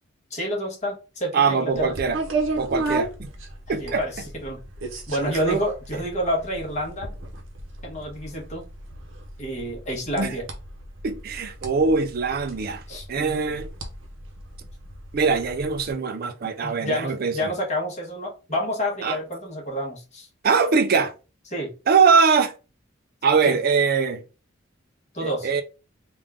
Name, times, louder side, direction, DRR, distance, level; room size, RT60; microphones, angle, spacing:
voice 1, 0.3-1.9 3.7-4.6 5.1-7.1 7.8-8.7 9.4-10.4 12.9-13.4 16.6-20.3 21.5-21.7 23.5-23.6 25.1-25.5, equal, 35° left, 1.2 m, -29 dB
voice 2, 1.3-2.2 2.6-3.3 3.7-4.0 10.1-10.3 11.0-12.8 13.1-13.7 15.1-17.5 19.0-19.2 20.4-21.1 21.9-22.5 23.2-24.2 25.2-25.6, right 5 dB, 50° right, 0.4 m, -22 dB
sound 1, 1.7-15.9, right 3 dB, 85° right, 0.9 m, -34 dB
3.7 x 2.4 x 3.5 m
head